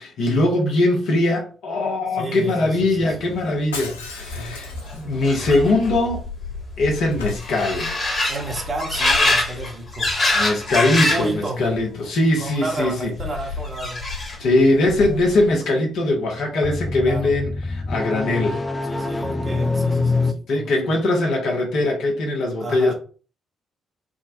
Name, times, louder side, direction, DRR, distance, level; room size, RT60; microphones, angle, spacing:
voice 1, 0.0-6.2 6.8-8.1 10.3-13.1 14.4-18.6 20.5-22.9, left 2 dB, 60° left, 0.8 m, -21 dB
voice 2, 2.1-3.3 4.2-4.5 8.3-10.4 11.1-11.7 12.4-14.0 17.0-17.4 18.8-20.7 22.6-22.9, right 2 dB, 35° right, 1.0 m, -31 dB
Shatter, 3.7-5.3 7.1-8.2 10.0-10.2, left 4 dB, 80° left, 0.4 m, -37 dB
sound 1, 4.1-11.4 11.7-12.3 13.2-14.5 14.9-15.5, left 2 dB, 40° left, 1.4 m, -25 dB
sound 2, 14.8-15.3 16.3-20.3, left 3 dB, 15° left, 0.4 m, -25 dB
3.7 x 2.2 x 2.6 m
figure-of-eight pair, 40°, 0 cm